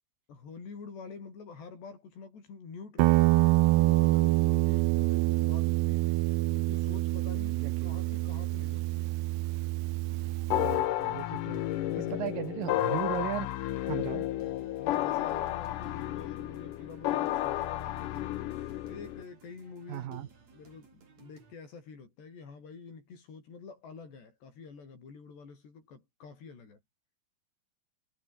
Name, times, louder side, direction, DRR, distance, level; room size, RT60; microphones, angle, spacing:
voice 1, 0.3-9.2 11.8-12.3 14.8-18.3 18.8-26.8, left 5 dB, 90° left, 9.0 m, -48 dB
Guitar, 3.0-10.8, right 20 dB, 90° right, 2.7 m, -26 dB
voice 2, 7.5-7.9 10.6-11.6 12.0-14.3 19.9-20.3, right 12 dB, 65° right, 2.7 m, -37 dB
sound 1, 10.1-21.5, right 5 dB, 40° right, 5.5 m, -59 dB
sound 2, 10.5-19.2, left 14 dB, 70° left, 2.1 m, -32 dB
omnidirectional pair, 4.7 m